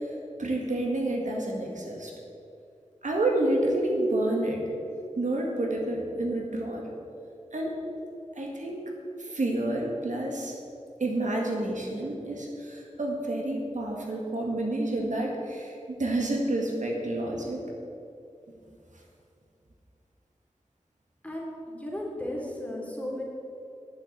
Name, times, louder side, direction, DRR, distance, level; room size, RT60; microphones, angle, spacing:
voice 1, 0.4-2.1 3.0-4.6 5.2-6.8 7.5-7.7 8.4-8.8 9.2-10.6 11.0-17.6, right 1 dB, 90° right, -1 dB, 1.8 m, -29 dB
voice 2, 21.2-23.2, left 1 dB, 10° left, -3 dB, 2.9 m, -35 dB
10.5 x 6.9 x 7.7 m, 2.6 s
wide cardioid pair, 55°, 12 cm